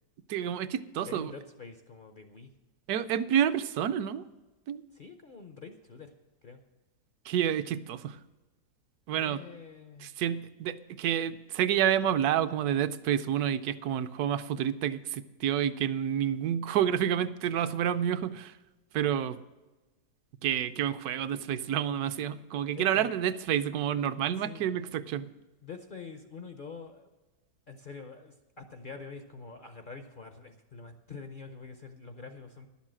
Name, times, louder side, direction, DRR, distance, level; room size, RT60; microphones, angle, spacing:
voice 1, 0.3-1.3 2.9-4.2 4.7-4.8 7.3-8.2 9.1-9.4 10.0-18.5 18.9-19.4 20.4-25.3, right 10 dB, 70° right, 13 dB, 1.0 m, -29 dB
voice 2, 1.1-2.5 4.9-6.1 6.4-6.6 9.2-10.1 22.7-23.2 24.4-24.7 25.6-27.1 27.7-32.7, left 4 dB, 60° left, 7 dB, 0.5 m, -46 dB
11.5 x 7.3 x 7.5 m, 1.1 s
omnidirectional pair, 1.8 m